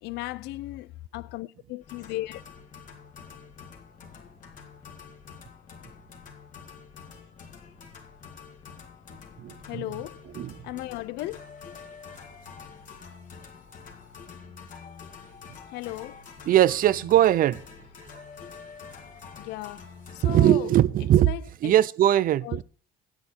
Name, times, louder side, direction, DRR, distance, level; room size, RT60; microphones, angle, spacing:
voice 1, 0.0-2.4 9.7-10.2 10.6-11.6 15.7-16.2 19.4-20.7 21.2-21.7 22.4-22.6, left 17 dB, 85° left, 0.5 m, -36 dB
sound 1, 1.8-20.4, left 6 dB, 50° left, 2.2 m, -47 dB
voice 2, 9.4-9.9 10.3-10.5 16.5-17.6 20.2-21.3 21.6-22.6, right 12 dB, 55° right, 0.5 m, -20 dB
9.6 x 8.4 x 4.4 m
cardioid pair, 110°, 17 cm